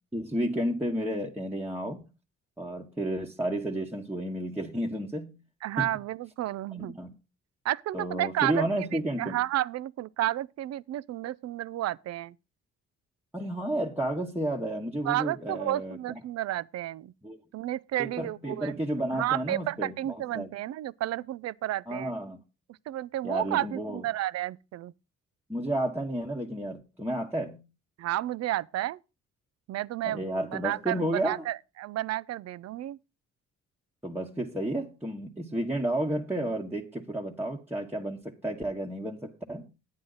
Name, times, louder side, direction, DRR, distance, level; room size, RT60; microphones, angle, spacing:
voice 1, 0.1-2.0 2.6-5.4 5.8-5.9 6.8-7.1 7.9-9.4 13.3-16.0 17.2-17.4 18.0-20.5 21.9-22.4 23.2-24.0 25.5-27.7 30.0-31.4 34.0-39.7, right 1 dB, 5° right, 1.1 m, -32 dB
voice 2, 5.6-7.0 7.6-8.9 9.2-12.4 15.0-17.1 17.5-18.8 19.1-22.1 22.7-24.9 28.0-29.0 29.7-33.0, right 14 dB, 60° right, 0.4 m, -31 dB
10.5 x 9.1 x 3.9 m
cardioid pair, 90°, 30 cm